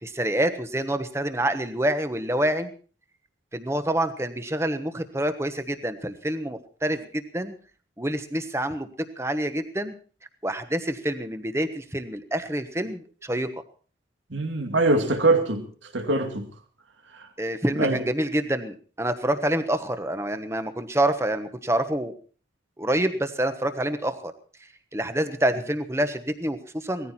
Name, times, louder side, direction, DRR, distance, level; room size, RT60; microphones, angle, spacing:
voice 1, 0.0-2.7 3.5-7.6 8.0-8.9 9.2-10.0 10.4-13.5 17.4-22.1 22.8-24.3 24.9-27.1, right 1 dB, 15° right, 1.2 m, -27 dB
voice 2, 14.3-15.7 15.9-16.5 17.1-17.3 17.8-18.0, right 2 dB, 85° right, 2.4 m, -23 dB
18.5 x 14.5 x 4.3 m
head